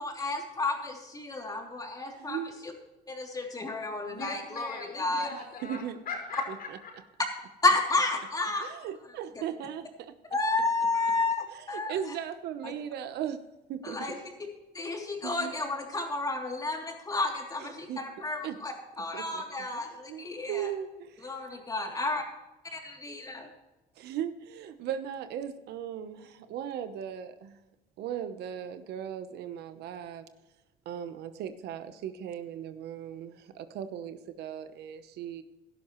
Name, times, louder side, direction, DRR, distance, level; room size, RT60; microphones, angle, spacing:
voice 1, 0.0-2.7 3.1-5.3 7.6-8.7 10.3-11.9 12.6-12.7 13.8-14.1 14.7-20.7 21.2-22.2 22.7-23.5, left 3 dB, 20° left, 0 dB, 3.1 m, -31 dB
voice 2, 2.2-2.5 5.6-6.0 8.6-10.1 11.5-13.4 13.7-14.2 15.2-15.5 17.6-18.0 18.4-18.6 19.1-19.4 19.7-21.4 24.0-27.6 28.0-30.2 30.8-35.4, right 9 dB, 75° right, 10 dB, 1.0 m, -38 dB
voice 3, 4.1-6.9, left 4 dB, 60° left, 0 dB, 5.1 m, -40 dB
16.5 x 12.0 x 3.2 m, 1.0 s
cardioid pair, 110°, 17 cm